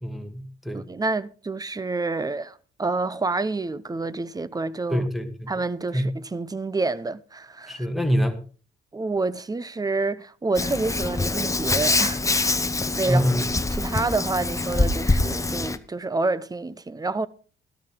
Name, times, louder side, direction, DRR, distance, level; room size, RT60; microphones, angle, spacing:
voice 1, 0.0-0.8 4.9-5.5 5.9-6.1 7.7-8.4 13.1-13.4, equal, ahead, 2.1 m, -25 dB
voice 2, 0.7-5.1 5.5-7.9 8.9-12.6 13.0-13.2 13.5-17.3, right 3 dB, 20° right, 0.7 m, -28 dB
Hands, 10.5-15.8, left 2 dB, 15° left, 0.9 m, -24 dB
13.5 x 12.5 x 3.8 m
cardioid pair, 90°, 20 cm